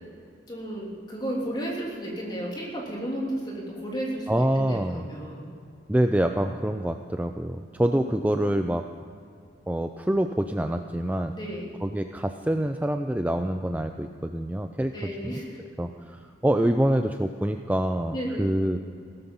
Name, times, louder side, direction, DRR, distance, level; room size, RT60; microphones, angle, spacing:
voice 1, 0.5-5.5 7.8-8.4 11.3-11.8 14.9-15.6 18.1-18.5, right 1 dB, 25° left, -2 dB, 3.3 m, -33 dB
voice 2, 4.3-5.1 5.9-8.9 9.7-11.3 11.8-15.0 15.2-15.4 15.8-18.8, right 1 dB, 10° right, 6 dB, 0.4 m, -26 dB
16.5 x 13.5 x 5.6 m, 2.3 s
head